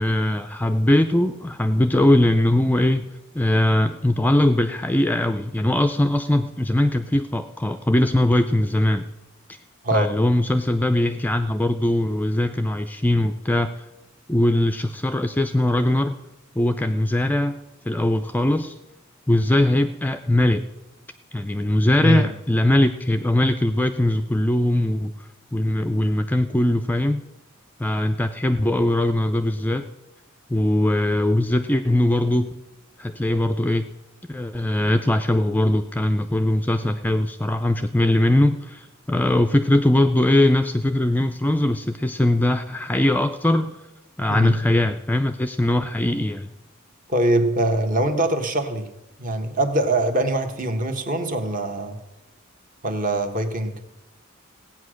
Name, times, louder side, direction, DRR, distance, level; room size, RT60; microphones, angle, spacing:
voice 1, 0.0-9.1 9.5-9.6 9.9-13.8 14.3-16.2 16.6-17.6 17.8-18.7 19.3-20.6 21.3-27.2 27.8-29.9 30.5-32.5 33.0-33.9 34.3-43.8 44.2-46.5, left 1 dB, 10° left, 8 dB, 0.4 m, -21 dB
voice 2, 22.0-22.3 44.3-44.6 47.1-48.9 49.2-52.0 52.8-53.8, right 1 dB, 40° right, 7 dB, 1.4 m, -23 dB
16.0 x 8.9 x 6.4 m, 0.96 s
head